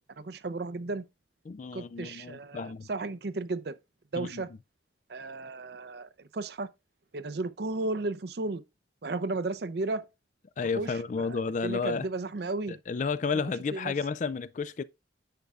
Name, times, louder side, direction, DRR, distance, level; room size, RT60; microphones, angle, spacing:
voice 1, 0.2-1.0 1.7-3.7 4.1-4.5 5.1-6.7 7.1-8.6 9.0-10.1 10.8-12.8 13.7-13.9, right 2 dB, 55° right, 0.5 m, -34 dB
voice 2, 1.5-2.9 4.1-4.4 10.6-12.1 12.7-14.8, left 5 dB, 40° left, 0.3 m, -32 dB
10.0 x 6.7 x 2.4 m
head